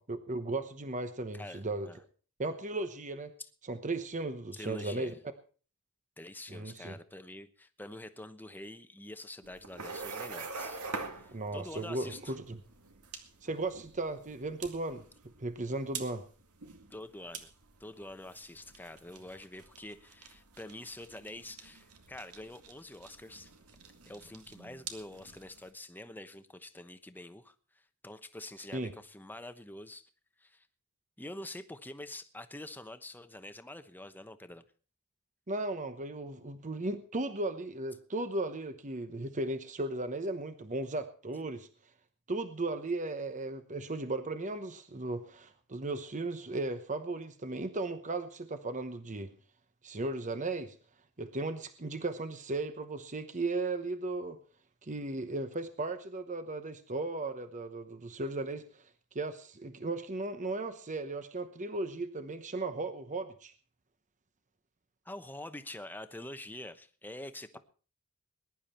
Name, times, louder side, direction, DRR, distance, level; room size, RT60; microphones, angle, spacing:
voice 1, 0.0-1.9 2.4-3.3 3.6-5.1 6.5-7.0 11.3-12.6 13.4-15.1 15.4-16.2 28.7-28.9 35.5-41.7 42.3-49.3 49.8-50.8 51.2-54.4 54.8-58.9 59.1-63.5, right 2 dB, 35° right, 9 dB, 1.0 m, -36 dB
voice 2, 1.3-2.0 3.4-3.5 4.5-5.2 6.2-10.8 11.1-12.4 16.9-17.5 17.8-23.5 24.0-30.1 30.4-30.7 31.2-34.6 65.0-67.6, left 1 dB, 10° left, 10 dB, 1.0 m, -46 dB
sound 1, 9.4-25.7, right 4 dB, 80° right, 2.1 m, -46 dB
20.5 x 11.0 x 4.4 m, 0.40 s
head